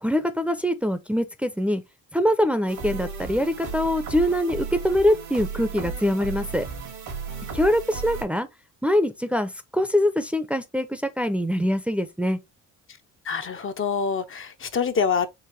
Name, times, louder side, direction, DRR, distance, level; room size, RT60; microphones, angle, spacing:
voice 1, 0.0-1.8 2.1-6.7 7.5-8.5 8.8-12.4, equal, 5° right, 0.6 m, -23 dB
sound 1, 2.7-8.2, right 5 dB, 90° right, 2.3 m, -34 dB
voice 2, 13.2-15.3, left 6 dB, 45° left, 0.7 m, -25 dB
4.8 x 2.8 x 3.2 m
cardioid pair, 90°, 30 cm